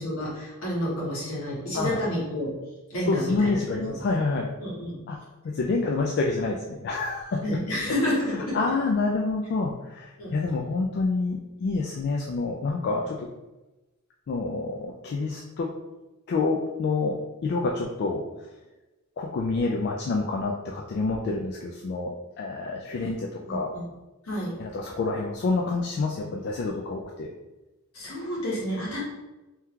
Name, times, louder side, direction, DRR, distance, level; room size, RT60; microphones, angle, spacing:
voice 1, 0.0-2.5 2.9-4.0 4.6-5.0 7.4-8.6 10.2-10.3 23.0-23.1 23.4-23.9 24.2-24.8 27.9-29.0, equal, 75° left, -6 dB, 1.4 m, -30 dB
voice 2, 3.1-4.5 5.1-5.2 5.4-7.6 8.2-13.3 14.3-15.7 16.3-18.5 19.2-23.7 24.6-27.3, left 3 dB, 50° left, 0 dB, 0.3 m, -28 dB
2.9 x 2.3 x 3.6 m, 1.1 s
head